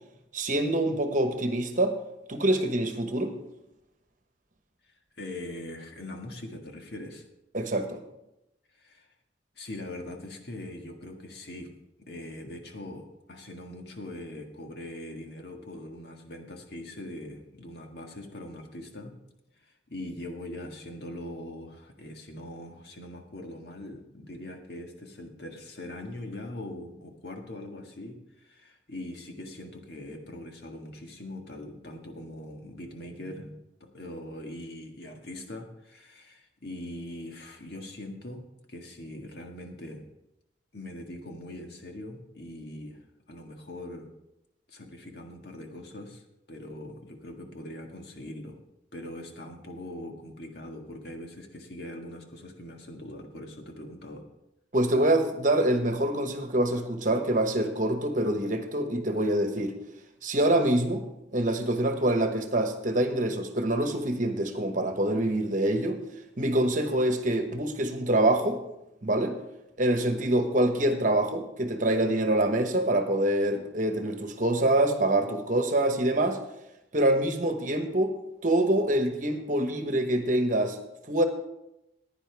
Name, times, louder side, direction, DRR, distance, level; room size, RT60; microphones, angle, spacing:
voice 1, 0.3-2.0 2.3-3.3 7.5-8.0 54.7-59.7 60.2-61.0 61.3-66.0 66.4-68.6 69.0-69.3 69.8-76.4 76.9-78.1 78.4-80.8 81.1-81.2, right 1 dB, 45° right, 6 dB, 1.2 m, -25 dB
voice 2, 5.2-7.2 8.8-9.1 9.5-11.7 12.1-19.2 19.9-33.5 33.8-40.0 40.7-43.0 43.3-44.1 44.7-48.6 48.9-54.3, left 1 dB, 60° left, 3 dB, 1.7 m, -41 dB
15.5 x 10.0 x 3.5 m, 0.88 s
head